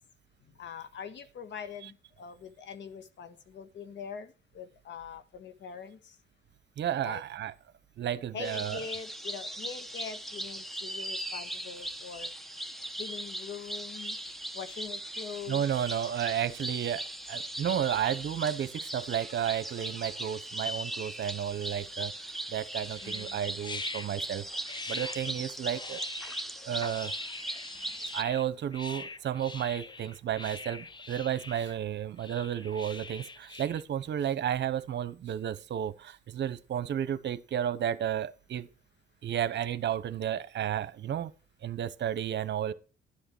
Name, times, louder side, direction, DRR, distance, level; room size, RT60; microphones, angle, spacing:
voice 1, 0.6-4.3 4.5-6.0 7.0-7.2 8.3-12.3 13.0-14.1 14.5-15.6 23.0-23.4, left 7 dB, 65° left, 1.6 m, -43 dB
voice 2, 6.8-7.5 8.0-8.8 15.5-17.0 17.3-22.1 22.5-24.4 24.9-26.0 26.6-27.1 28.1-38.7 39.2-41.3 41.6-42.7, right 10 dB, 60° right, 1.1 m, -32 dB
sound 1, 8.4-28.2, right 1 dB, ahead, 1.2 m, -39 dB
sound 2, 22.8-33.8, left 3 dB, 25° left, 0.8 m, -44 dB
12.0 x 7.9 x 6.0 m
cardioid pair, 90°, 20 cm